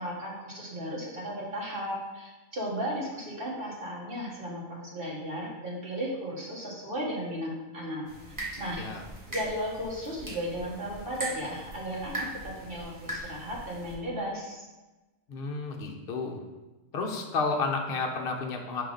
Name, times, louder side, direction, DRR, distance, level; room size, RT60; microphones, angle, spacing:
voice 1, 0.0-8.1 8.6-8.8 9.3-14.6, equal, 40° right, -4 dB, 1.6 m, -35 dB
sound 1, 8.1-14.0, right 1 dB, 15° right, 1.3 m, -40 dB
voice 2, 15.3-16.4 16.9-18.8, left 4 dB, 50° left, 1 dB, 0.9 m, -31 dB
5.6 x 5.0 x 3.8 m, 1.1 s
omnidirectional pair, 1.4 m